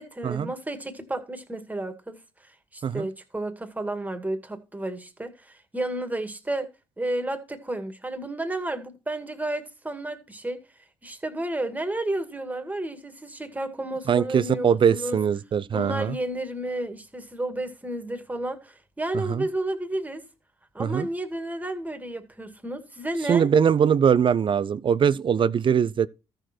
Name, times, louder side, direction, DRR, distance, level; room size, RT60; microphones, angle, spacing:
voice 1, 0.0-6.7 7.0-10.6 11.0-15.2 15.7-20.2 20.7-23.5, right 1 dB, 15° right, 2.2 m, -32 dB
voice 2, 14.1-16.1 19.1-19.5 20.8-21.1 23.3-26.1, right 7 dB, 45° right, 0.6 m, -22 dB
13.5 x 6.5 x 4.5 m
supercardioid pair, 60°, 12 cm